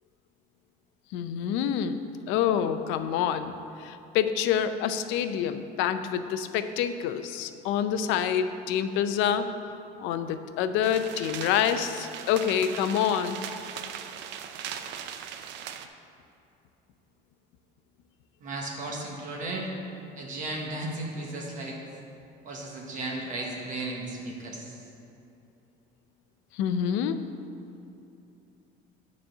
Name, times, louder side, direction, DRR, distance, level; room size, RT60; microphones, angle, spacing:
voice 1, 1.1-2.0 2.3-9.5 10.0-13.4 26.5-27.2, left 9 dB, 75° left, 10 dB, 0.5 m, -27 dB
sound 1, 10.8-15.9, right 9 dB, 65° right, 0.5 m, -39 dB
voice 2, 18.4-19.7 20.2-21.8 22.4-24.8, right 2 dB, 40° right, -2 dB, 1.2 m, -35 dB
9.4 x 4.2 x 6.6 m, 2.7 s
cardioid pair, 155°, 19 cm